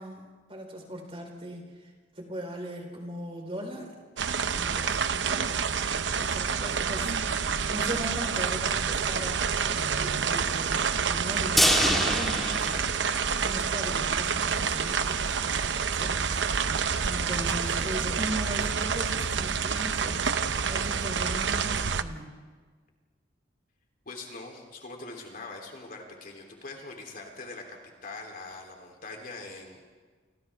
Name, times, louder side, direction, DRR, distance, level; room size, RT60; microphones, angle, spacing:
voice 1, 0.0-3.9 4.5-5.5 6.1-22.3, equal, 35° right, 1 dB, 4.4 m, -39 dB
sound 1, 4.2-22.0, right 6 dB, 85° right, 0.8 m, -28 dB
sound 2, 11.6-13.7 14.0-14.1 14.5-14.6, equal, ahead, 2.0 m, -26 dB
voice 2, 24.0-29.8, left 3 dB, 55° left, 1 dB, 3.4 m, -42 dB
29.5 x 25.0 x 3.6 m, 1.4 s
head